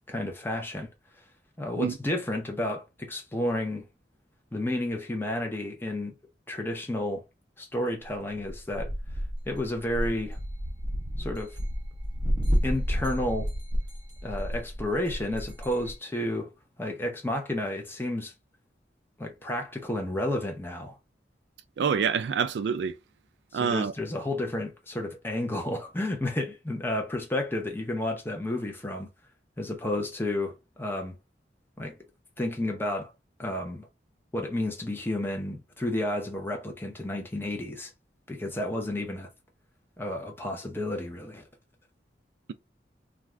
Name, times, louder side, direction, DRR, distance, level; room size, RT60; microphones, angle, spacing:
voice 1, 0.1-0.9 1.6-3.9 4.5-6.2 6.5-7.2 7.6-8.9 9.5-10.4 11.2-11.5 12.6-13.5 14.2-16.5 16.8-18.3 19.2-21.0 23.5-29.1 29.6-31.1 31.8-32.0 32.4-33.1 33.4-33.9 34.3-37.9 38.3-39.3 40.0-41.4, left 1 dB, 15° left, 0.7 m, -31 dB
sound 1, 8.5-15.9, equal, 25° right, 0.7 m, -31 dB
voice 2, 21.8-22.9 23.5-23.9, right 6 dB, 70° right, 0.3 m, -26 dB
2.4 x 2.3 x 3.2 m
head